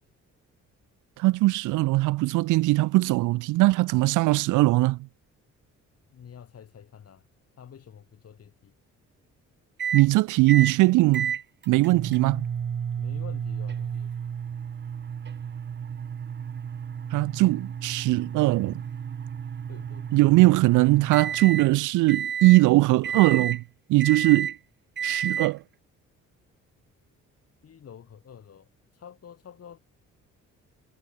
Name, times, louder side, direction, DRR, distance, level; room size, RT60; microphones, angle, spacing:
voice 1, 1.2-5.0 9.9-11.3 11.7-12.5 17.1-18.8 20.1-23.6 23.9-24.5 25.0-25.6, right 20 dB, 85° right, 0.5 m, -20 dB
voice 2, 6.1-7.3 7.6-8.7 13.0-14.1 19.7-20.2 27.6-29.8, left 8 dB, 50° left, 3.5 m, -48 dB
sound 1, 9.8-10.1 10.5-10.8 11.1-21.7 22.1-22.6 23.0-23.6 24.0-24.6 25.0-25.5, right 7 dB, 35° right, 0.9 m, -32 dB
cardioid pair, 90°, 30 cm